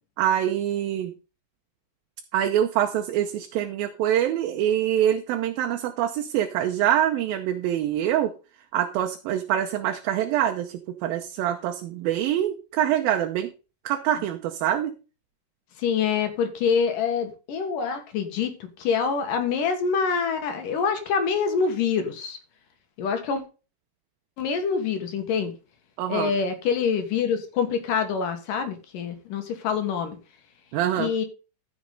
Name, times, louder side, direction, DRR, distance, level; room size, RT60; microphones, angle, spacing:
voice 1, 0.2-1.1 2.3-8.3 8.7-13.5 13.9-14.9 26.0-26.3 30.7-31.1, right 11 dB, 75° right, 4 dB, 2.5 m, -25 dB
voice 2, 15.8-18.5 18.8-22.4 23.0-23.4 24.4-25.5 26.1-30.2 31.0-31.2, left 6 dB, 65° left, 7 dB, 2.9 m, -25 dB
14.0 x 6.5 x 3.9 m, 0.32 s
omnidirectional pair, 4.3 m